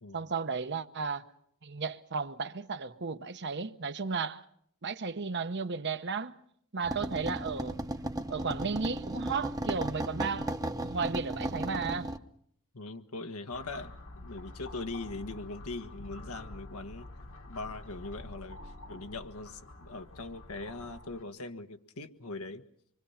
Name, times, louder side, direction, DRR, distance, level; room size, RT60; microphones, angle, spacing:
voice 1, 0.1-1.2 1.6-4.4 4.8-6.3 6.7-7.8 8.3-10.5 10.8-12.1, right 5 dB, 50° right, 0.9 m, -34 dB
sound 1, 6.8-12.2, right 1 dB, 15° right, 0.9 m, -35 dB
voice 2, 12.7-17.1 17.5-22.6, left 3 dB, 85° left, 1.6 m, -41 dB
sound 2, 13.5-21.2, left 2 dB, 65° left, 1.8 m, -47 dB
25.5 x 24.5 x 5.8 m
head